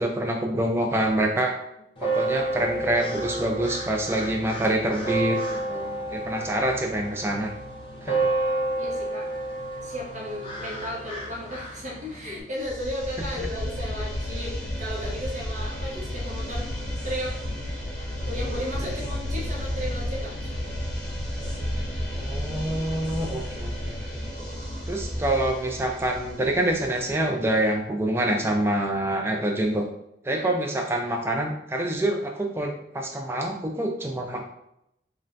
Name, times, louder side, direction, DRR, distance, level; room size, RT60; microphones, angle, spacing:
voice 1, 0.0-1.5 2.0-5.4 5.7-7.5 8.0-8.2 13.4-13.5 22.1-24.3 24.9-29.8 30.2-34.4, right 1 dB, 15° right, 2 dB, 0.3 m, -26 dB
sound 1, 2.0-12.4, right 2 dB, 30° left, 0.6 m, -30 dB
voice 2, 8.8-9.3 9.8-16.7 17.0-17.4 18.3-20.7 30.3-30.5, equal, 40° right, -4 dB, 0.9 m, -35 dB
sound 2, 12.6-27.4, equal, 5° left, 1.2 m, -32 dB
2.6 x 2.4 x 3.2 m, 0.79 s
head